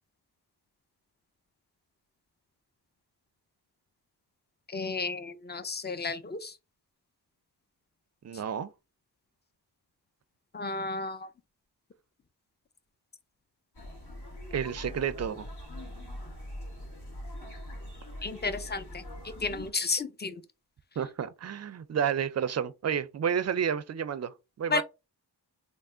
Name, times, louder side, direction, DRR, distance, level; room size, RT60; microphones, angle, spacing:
voice 1, 4.7-6.5 10.5-11.3 18.2-19.0 19.4-20.4 24.7-24.8, left 4 dB, 25° left, 0.6 m, -32 dB
voice 2, 8.2-8.7 14.5-15.5 21.0-24.8, right 8 dB, 40° right, 0.5 m, -31 dB
sound 1, 13.7-19.7, left 1 dB, 65° left, 2.0 m, -42 dB
3.3 x 2.1 x 3.7 m
cardioid pair, 45°, 43 cm